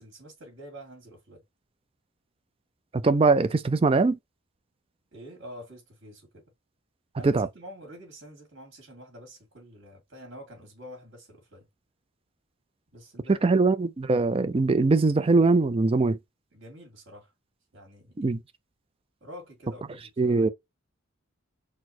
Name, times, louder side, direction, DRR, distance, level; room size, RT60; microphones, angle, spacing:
voice 1, 0.0-1.4 5.1-6.4 7.1-11.7 12.9-13.4 16.5-17.3 17.7-18.3 19.2-20.5, equal, 55° right, 2.1 m, -47 dB
voice 2, 2.9-4.2 7.2-7.5 13.3-16.2 18.2-18.4 20.2-20.5, right 3 dB, 25° right, 0.4 m, -22 dB
4.3 x 2.1 x 4.2 m
head